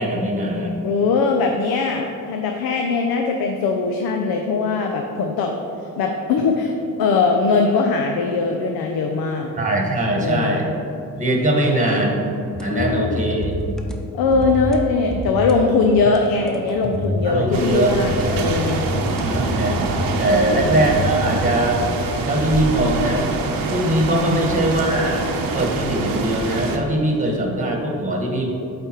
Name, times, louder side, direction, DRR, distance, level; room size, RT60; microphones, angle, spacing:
voice 1, 0.0-0.8 9.6-10.7 11.2-12.2 12.6-13.5 17.2-18.3 18.8-19.8 20.2-21.8 22.3-23.3 23.7-25.3 25.5-28.5, right 1 dB, 20° right, 1 dB, 1.2 m, -21 dB
voice 2, 0.8-5.5 6.0-6.7 7.0-9.5 10.2-10.6 12.7-13.2 14.1-18.8 20.2-20.8 24.0-24.4, left 4 dB, 90° left, 3 dB, 0.6 m, -21 dB
sound 1, 12.5-13.1 13.4-14.0 14.3-14.8 15.1-15.6 15.9-17.4 18.1-19.7 20.0-22.1 22.5-22.8, left 1 dB, ahead, 0.6 m, -28 dB
sound 2, 17.5-26.8, right 4 dB, 70° right, 0.8 m, -25 dB
8.3 x 3.4 x 4.4 m, 2.7 s
cardioid pair, 85°, 36 cm